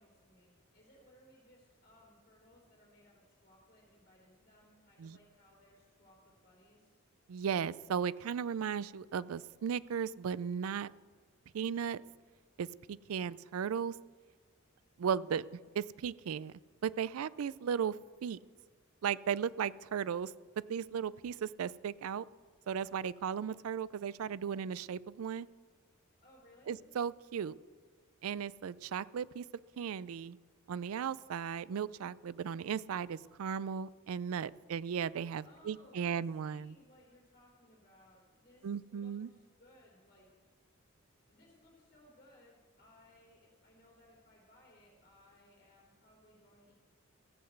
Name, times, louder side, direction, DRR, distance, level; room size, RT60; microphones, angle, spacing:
voice 1, 0.0-7.0 26.2-26.8 35.4-40.3 41.3-46.7, left 1 dB, 40° left, -4 dB, 3.7 m, -63 dB
voice 2, 7.3-10.9 11.5-12.0 12.6-13.9 15.0-16.5 16.8-17.9 18.2-18.4 19.0-20.3 20.7-22.3 22.7-25.5 26.7-27.6 28.2-29.4 29.8-30.4 30.7-36.7 38.6-39.3, right 7 dB, 90° right, 20 dB, 0.4 m, -36 dB
14.5 x 7.9 x 8.0 m, 1.5 s
head